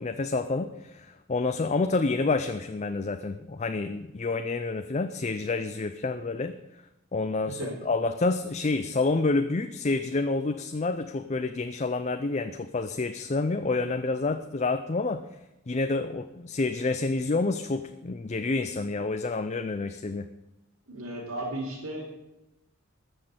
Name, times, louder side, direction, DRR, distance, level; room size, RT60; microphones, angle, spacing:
voice 1, 0.0-6.5 7.1-15.2 15.7-20.3, left 3 dB, 30° left, 9 dB, 0.5 m, -28 dB
voice 2, 20.9-22.2, right 1 dB, 85° right, -4 dB, 3.3 m, -35 dB
14.0 x 6.4 x 8.4 m, 0.93 s
head